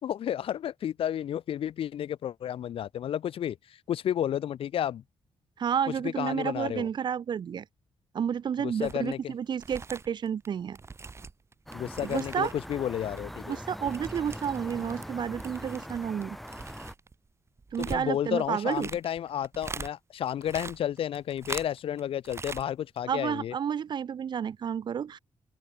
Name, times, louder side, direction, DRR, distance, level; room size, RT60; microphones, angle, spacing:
voice 1, 0.0-3.6 3.9-5.0 5.9-6.9 8.6-9.3 11.7-13.6 17.8-23.5, left 10 dB, 75° left, 1.1 m, -31 dB
voice 2, 5.6-7.6 8.1-10.8 12.0-12.5 13.5-16.4 17.7-18.9 23.1-25.2, right 8 dB, 55° right, 0.9 m, -31 dB
sound 1, 8.8-9.1 9.5-12.7 13.0-15.1 15.3-19.9 20.2-22.0 22.2-22.6 23.0-23.1, right 4 dB, 30° right, 3.8 m, -42 dB
sound 2, 11.7-16.9, equal, ahead, 7.8 m, -42 dB
open air
wide cardioid pair, 145°, 9 cm